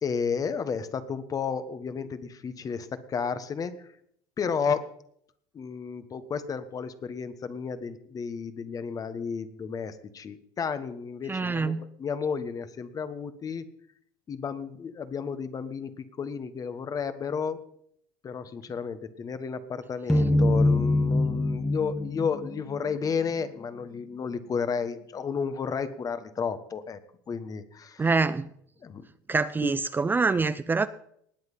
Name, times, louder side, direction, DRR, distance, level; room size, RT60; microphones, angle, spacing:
voice 1, 0.0-3.7 4.4-4.8 5.5-13.7 14.3-17.6 18.2-27.0 27.3-28.1 28.8-29.0 29.6-29.7, left 6 dB, 35° left, 12 dB, 1.4 m, -32 dB
voice 2, 11.3-11.8 28.0-28.5 29.3-30.9, right 4 dB, 20° right, 13 dB, 0.5 m, -25 dB
sound 1, 20.1-23.3, left 1 dB, 5° left, 1.5 m, -24 dB
19.5 x 8.0 x 5.6 m, 0.70 s
hypercardioid pair, 80°, 10 cm